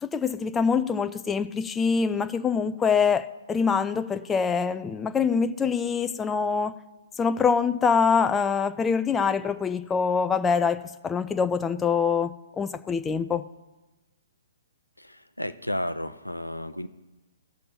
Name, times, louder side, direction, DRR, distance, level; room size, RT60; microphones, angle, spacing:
voice 1, 0.0-6.7 7.2-13.4, left 6 dB, 10° left, 0.4 m, -25 dB
voice 2, 15.0-16.9, left 1 dB, 90° left, 0.5 m, -32 dB
15.5 x 6.7 x 2.8 m
figure-of-eight pair, 120°, 0 cm